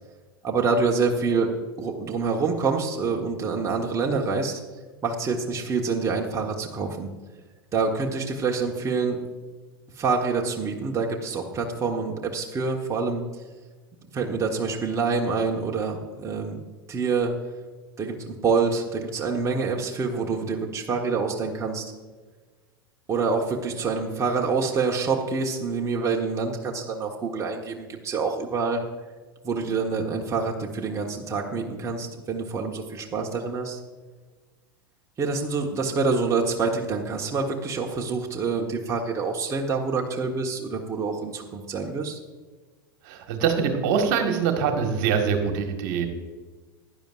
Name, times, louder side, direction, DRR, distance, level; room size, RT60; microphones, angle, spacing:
voice 1, 0.4-1.5 1.8-4.6 5.0-7.1 7.7-9.2 9.9-13.2 14.1-16.6 16.9-17.3 18.0-21.9 23.1-28.8 29.4-33.8 35.2-42.2, right 4 dB, 25° right, 0 dB, 1.4 m, -26 dB
voice 2, 43.0-46.1, right 6 dB, 55° right, 4 dB, 1.7 m, -24 dB
16.0 x 11.0 x 2.6 m, 1.4 s
figure-of-eight pair, 85°, 12 cm